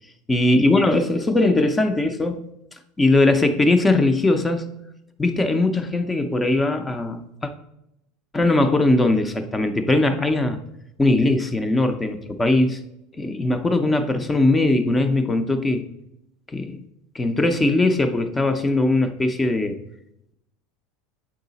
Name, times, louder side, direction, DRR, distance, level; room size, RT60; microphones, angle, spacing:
voice 1, 0.3-2.4 3.0-4.7 5.2-7.5 8.3-10.6 11.0-12.8 13.2-15.9 16.5-16.8 17.1-19.8, left 2 dB, 10° left, 8 dB, 0.5 m, -20 dB
7.2 x 4.8 x 4.0 m, 0.83 s
supercardioid pair, 145°, 0 cm